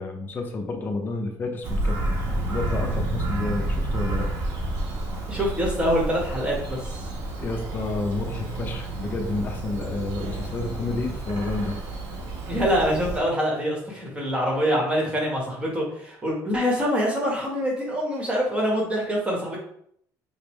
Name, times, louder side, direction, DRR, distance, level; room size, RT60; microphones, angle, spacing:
voice 1, 0.0-2.2 2.5-4.3 7.4-11.8, left 3 dB, 25° left, 3 dB, 0.6 m, -30 dB
Bird vocalization bird call bird song, 1.6-13.2, right 2 dB, 80° right, 1.0 m, -30 dB
voice 2, 5.3-7.1 12.5-19.6, equal, 15° right, -2 dB, 1.0 m, -25 dB
5.0 x 2.0 x 3.0 m, 0.68 s
cardioid pair, 160°, 7 cm